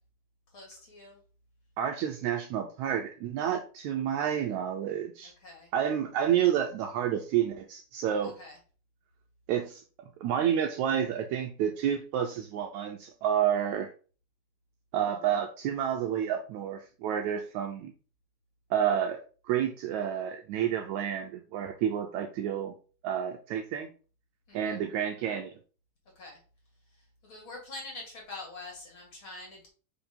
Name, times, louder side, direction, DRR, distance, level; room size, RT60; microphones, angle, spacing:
voice 1, 0.5-1.2 5.4-5.7 8.2-8.6 24.5-24.8 26.2-26.4 27.2-29.7, left 2 dB, 40° left, -2 dB, 3.0 m, -45 dB
voice 2, 1.8-5.3 5.7-8.4 9.5-9.8 10.2-13.9 14.9-17.9 18.7-19.2 19.4-22.8 23.0-23.9 24.5-25.5, right 9 dB, 75° right, 4 dB, 1.8 m, -29 dB
5.4 x 5.0 x 5.1 m, 0.38 s
omnidirectional pair, 3.8 m